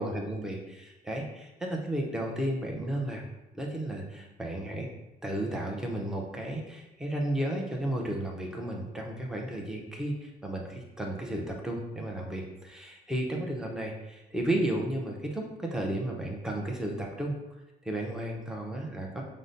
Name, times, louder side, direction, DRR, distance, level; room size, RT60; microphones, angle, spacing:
voice 1, 0.0-3.2 3.5-4.9 5.2-17.4 17.8-19.2, right 1 dB, 5° right, -1 dB, 0.7 m, -33 dB
5.0 x 2.1 x 3.9 m, 0.97 s
cardioid pair, 110°, 17 cm